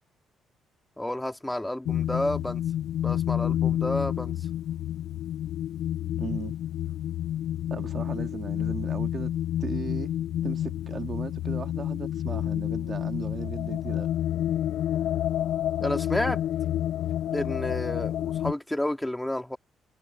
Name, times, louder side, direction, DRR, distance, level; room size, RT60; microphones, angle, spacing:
voice 1, 1.0-2.6 3.0-4.3 15.8-16.4 17.3-19.6, left 1 dB, 5° left, 2.4 m, -30 dB
sound 1, 1.9-18.5, left 11 dB, 80° left, 0.4 m, -29 dB
voice 2, 6.2-6.6 7.7-9.3 9.6-10.1 10.4-14.1, right 5 dB, 45° right, 2.1 m, -36 dB
cardioid pair, 90°, 0 cm